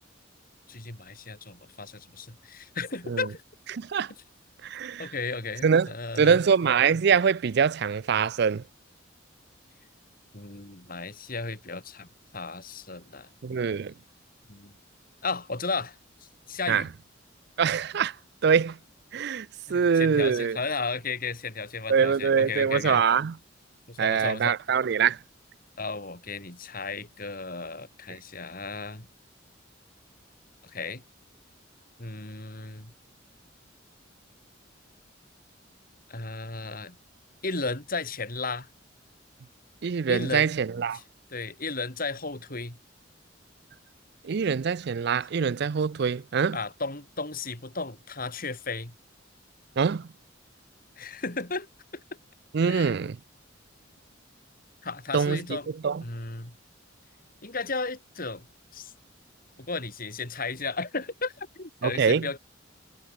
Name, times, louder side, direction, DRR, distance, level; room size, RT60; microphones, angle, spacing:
voice 1, 0.7-3.4 5.0-6.4 10.3-13.3 14.5-14.7 15.2-16.9 19.3-19.4 19.7-23.0 23.9-24.6 25.8-29.1 30.6-31.0 32.0-32.9 36.1-37.0 37.4-38.7 40.1-40.5 40.9-41.0 41.3-42.8 46.5-48.9 51.0-51.7 51.9-52.0 52.6-52.9 54.8-55.7 56.0-56.6 57.4-58.5 58.7-58.9 59.6-62.4, left 3 dB, 45° left, 4.0 m, -34 dB
voice 2, 3.7-4.1 4.6-5.1 5.6-5.9 6.2-8.6 13.4-13.9 16.7-16.8 17.6-18.1 18.4-18.8 19.1-20.6 21.9-23.3 24.0-25.2 39.8-41.0 44.2-46.6 49.8-50.1 52.5-53.2 55.1-55.4 55.8-56.0 61.8-62.3, right 6 dB, 55° right, 0.4 m, -24 dB
head